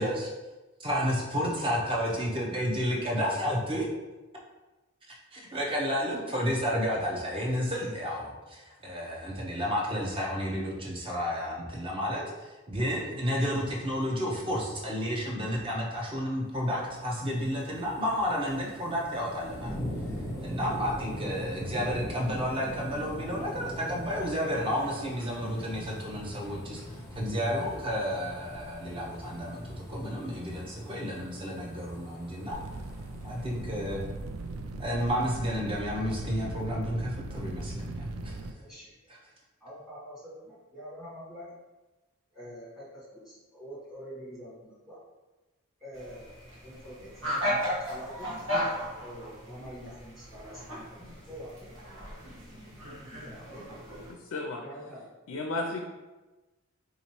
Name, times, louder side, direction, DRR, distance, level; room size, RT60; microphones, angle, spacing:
voice 1, 0.0-0.3 0.8-3.9 5.1-19.7 20.4-32.6 33.2-34.0 34.8-38.5, equal, 25° right, -2 dB, 0.6 m, -31 dB
sound 1, 16.5-34.7 35.1-35.2, equal, 15° left, 0.6 m, -41 dB
sound 2, 32.5-38.5, right 2 dB, 80° right, 0.3 m, -39 dB
voice 2, 38.6-39.1 39.6-41.4 42.3-45.0 45.8-47.1 47.4-48.4 49.0-51.8 52.2-52.3 53.1-54.3 54.6-55.0, equal, ahead, -9 dB, 1.5 m, -46 dB
sound 3, 45.9-54.1, equal, 60° right, 1.3 m, -35 dB
voice 3, 54.1-54.6 55.3-55.8, left 2 dB, 60° left, 2 dB, 0.3 m, -33 dB
3.7 x 2.9 x 2.9 m, 1.1 s
head